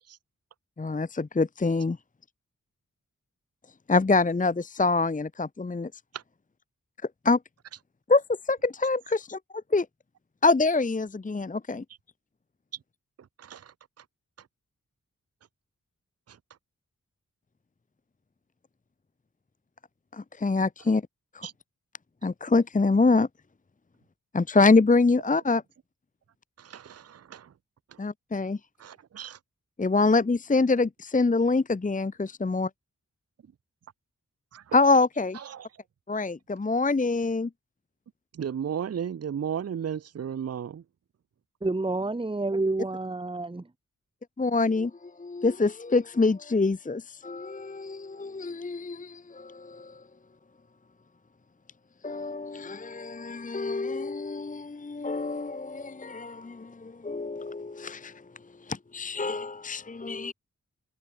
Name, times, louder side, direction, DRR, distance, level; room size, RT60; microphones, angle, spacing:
voice 1, 0.8-2.0 3.9-5.9 7.2-7.4 8.1-9.4 9.7-9.9 10.4-11.8 20.1-21.0 21.3-21.5 22.2-23.3 24.3-25.6 28.0-28.6 29.8-32.7 34.7-35.4 36.1-37.5 44.4-50.0 52.0-58.2 58.6-60.3, left 3 dB, 25° left, 0.8 m, -25 dB
voice 2, 13.4-13.7 16.3-16.4 21.4-21.5 26.6-27.5 27.9-28.0 28.8-29.4 34.5-34.7 35.4-35.7 38.3-40.8, right 8 dB, 50° right, 0.6 m, -35 dB
voice 3, 41.6-43.7, right 2 dB, 15° right, 0.9 m, -29 dB
wide cardioid pair, 95°, 32 cm